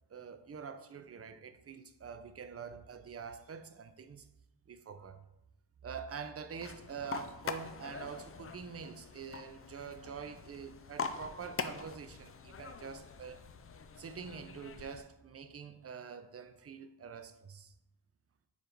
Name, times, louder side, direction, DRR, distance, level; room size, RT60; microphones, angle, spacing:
voice 1, 0.1-4.3 4.7-5.2 5.8-13.5 14.0-17.7, right 6 dB, 35° right, 0.5 m, -46 dB
sound 1, 6.6-15.0, left 6 dB, 35° left, 0.4 m, -44 dB
4.8 x 4.5 x 5.2 m
wide cardioid pair, 110°, 44 cm